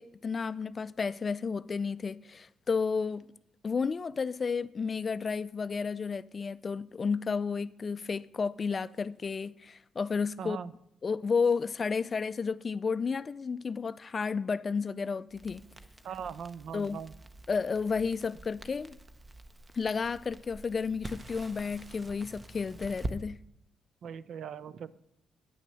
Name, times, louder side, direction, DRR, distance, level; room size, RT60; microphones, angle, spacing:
voice 1, 0.0-3.3 3.6-10.6 11.0-15.6 16.7-17.0 17.5-19.0 19.7-23.4, left 5 dB, 35° left, 0.3 m, -32 dB
voice 2, 10.4-10.7 16.0-17.1 24.0-25.0, right 7 dB, 65° right, 0.5 m, -40 dB
Crackle, 15.3-23.2, right 2 dB, 25° right, 0.7 m, -45 dB
9.3 x 6.0 x 6.8 m
cardioid pair, 90°, 0 cm